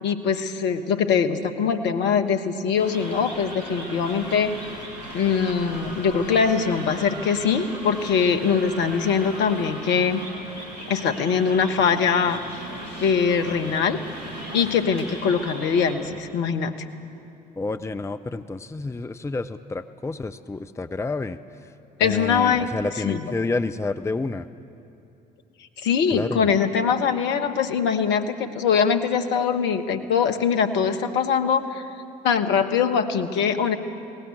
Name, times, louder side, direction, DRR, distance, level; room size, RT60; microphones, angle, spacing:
voice 1, 0.0-4.6 5.1-10.2 10.9-12.4 13.0-14.0 14.5-16.7 22.0-22.7 23.0-23.3 25.8-31.8 32.2-33.8, left 6 dB, 60° left, 7 dB, 1.4 m, -22 dB
sound 1, 2.8-15.9, right 1 dB, 85° right, 3.0 m, -37 dB
voice 2, 17.6-21.4 22.0-24.5 26.1-26.5, left 3 dB, 15° left, 11 dB, 0.7 m, -29 dB
20.5 x 18.5 x 8.5 m, 2.8 s
figure-of-eight pair, 50°, 20 cm